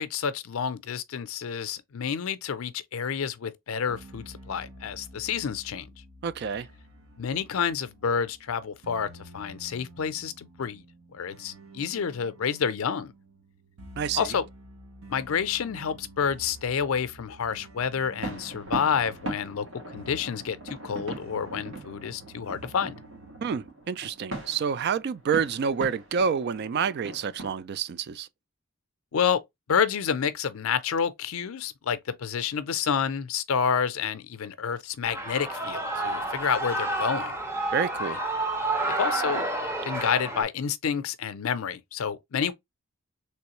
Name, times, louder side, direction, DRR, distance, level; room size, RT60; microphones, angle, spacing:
voice 1, 0.0-5.9 7.2-10.8 11.1-13.1 14.1-14.5 15.1-19.7 19.9-23.0 29.1-29.4 29.7-37.4 39.0-39.5 39.8-42.5, left 7 dB, 80° left, 0.5 m, -29 dB
sound 1, 3.9-23.7, right 1 dB, 85° right, 0.8 m, -50 dB
voice 2, 6.2-6.7 14.0-14.2 23.4-28.3 37.7-38.2, right 6 dB, 50° right, 0.3 m, -28 dB
sound 2, 18.2-27.6, right 2 dB, 65° right, 1.8 m, -40 dB
Shout / Cheering, 35.0-40.4, right 2 dB, 10° right, 0.6 m, -30 dB
3.4 x 3.1 x 2.9 m
head